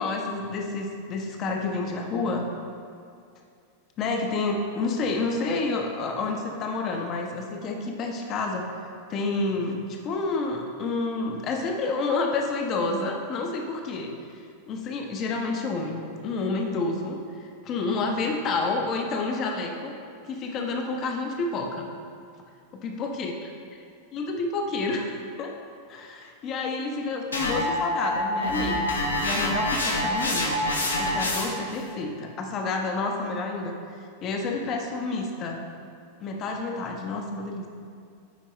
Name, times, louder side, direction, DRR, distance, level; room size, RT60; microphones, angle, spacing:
voice 1, 0.0-2.5 4.0-8.7 9.1-14.1 14.7-17.2 17.6-20.0 20.2-21.9 22.7-23.3 24.1-25.5 25.9-30.6 31.0-33.8 34.2-35.6 36.2-37.7, left 3 dB, 35° left, 2 dB, 0.7 m, -29 dB
sound 1, 27.3-31.7, left 1 dB, 75° left, 0.9 m, -26 dB
8.9 x 4.5 x 3.1 m, 2.4 s
figure-of-eight pair, 90°, 0 cm